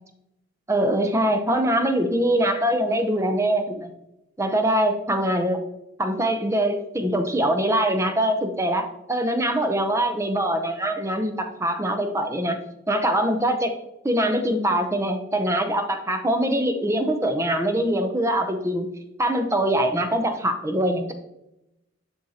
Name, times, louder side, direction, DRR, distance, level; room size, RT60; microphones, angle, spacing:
voice 1, 0.7-3.9 4.4-5.6 6.0-12.6 12.9-13.7 14.0-18.9 19.2-21.1, right 1 dB, 15° right, 6 dB, 0.6 m, -23 dB
7.7 x 6.2 x 2.8 m, 0.87 s
head